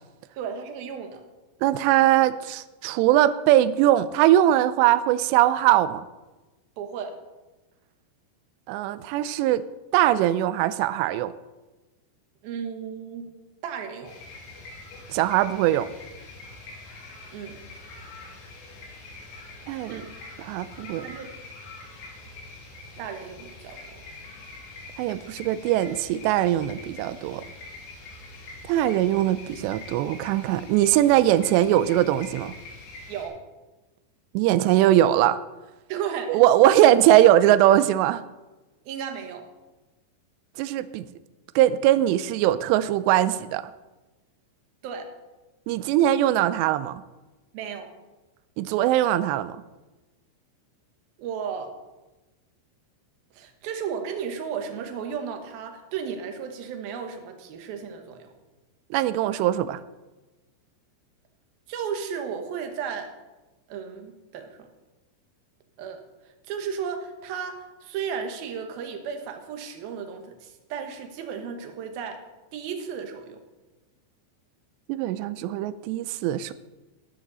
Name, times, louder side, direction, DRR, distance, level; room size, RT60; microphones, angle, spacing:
voice 1, 0.4-1.2 6.8-7.1 12.4-13.3 13.6-14.1 17.3-17.6 19.9-20.1 21.0-21.3 23.0-24.0 33.1-33.4 35.9-36.4 38.9-39.5 44.8-45.1 47.5-47.9 51.2-51.7 53.3-58.3 61.7-63.1 63.7-64.6 65.8-66.0 66.5-72.2 72.5-73.4, right 7 dB, 65° right, 5 dB, 2.6 m, -34 dB
voice 2, 1.6-6.0 8.7-9.6 9.9-11.3 15.1-15.9 19.7-19.9 20.4-21.1 25.0-27.4 28.7-32.5 34.3-35.4 36.3-38.2 40.6-41.1 41.6-43.6 45.7-47.0 48.6-49.6 58.9-59.8 74.9-76.5, right 13 dB, 85° right, 14 dB, 2.5 m, -21 dB
sound 1, 14.0-33.3, left 2 dB, 70° left, 4.6 m, -44 dB
14.0 x 12.5 x 4.0 m, 1.1 s
omnidirectional pair, 5.4 m